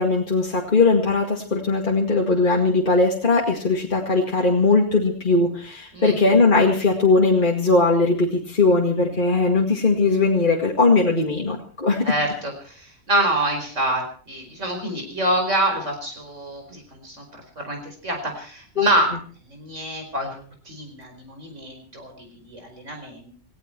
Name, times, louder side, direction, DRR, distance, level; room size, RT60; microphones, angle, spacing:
voice 1, 0.0-12.0 18.8-18.9, left 3 dB, 40° left, 0 dB, 2.2 m, -19 dB
voice 2, 12.0-17.2 17.6-19.1 19.5-23.3, right 1 dB, 70° right, 4 dB, 5.1 m, -26 dB
19.0 x 16.5 x 4.6 m, 0.43 s
omnidirectional pair, 1.3 m